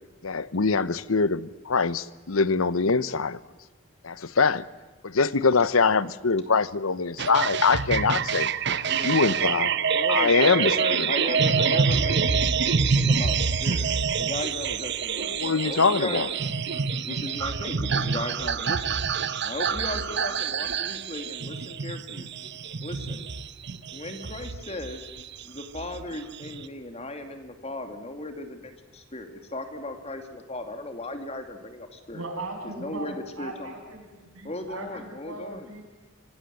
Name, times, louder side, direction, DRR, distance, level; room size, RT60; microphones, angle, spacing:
voice 1, 0.2-3.4 4.0-4.6 5.0-8.5 9.0-9.7 10.1-11.1 15.3-16.3, left 4 dB, 90° left, 17 dB, 0.9 m, -23 dB
sound 1, 7.2-26.7, right 6 dB, 55° right, 0.9 m, -26 dB
voice 2, 8.8-9.8 13.0-13.1 32.1-35.8, right 2 dB, 85° right, 1 dB, 7.6 m, -39 dB
voice 3, 9.9-13.9 14.2-16.2 17.0-19.0 19.4-22.3 22.8-23.2 23.9-25.0 25.4-32.3 32.6-33.8 34.4-35.7, left 2 dB, 30° left, 6 dB, 2.5 m, -36 dB
26.0 x 19.0 x 7.8 m, 1.3 s
head